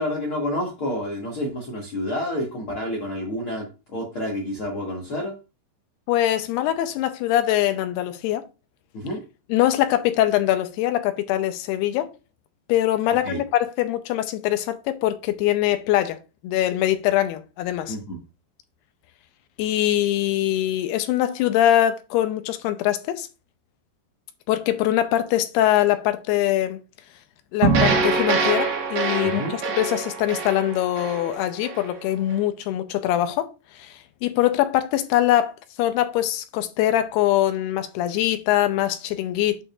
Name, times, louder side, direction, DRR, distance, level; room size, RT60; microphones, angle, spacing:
voice 1, 0.0-5.3 8.9-9.2 13.2-13.4 17.9-18.2 29.2-29.5, left 1 dB, 55° left, 1.5 m, -29 dB
voice 2, 6.1-8.5 9.5-12.1 12.7-16.2 16.4-18.0 19.6-23.3 24.5-26.8 27.5-33.5 33.8-35.5 35.8-39.6, left 13 dB, 80° left, 2.6 m, -23 dB
sound 1, 27.6-31.9, right 4 dB, 60° right, 1.7 m, -24 dB
8.6 x 6.7 x 2.5 m
omnidirectional pair, 4.9 m